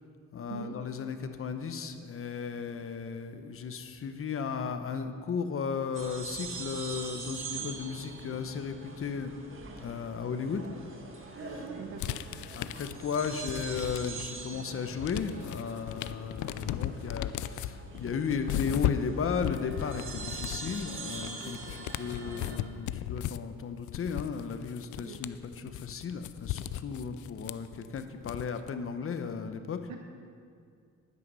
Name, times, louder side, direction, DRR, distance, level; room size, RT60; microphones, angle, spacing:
voice 1, 0.3-10.7 11.2-11.7 12.5-29.9, left 6 dB, 45° left, 8 dB, 0.9 m, -35 dB
sound 1, 5.9-22.6, right 4 dB, 45° right, 1.6 m, -43 dB
voice 2, 11.6-12.2 25.1-25.2 29.9-30.0, right 6 dB, 80° right, 4 dB, 0.9 m, -42 dB
sound 2, 12.0-14.4 14.8-28.7, left 13 dB, 75° left, 0.5 m, -37 dB
11.0 x 9.5 x 5.5 m, 2.3 s
cardioid pair, 90°, 30 cm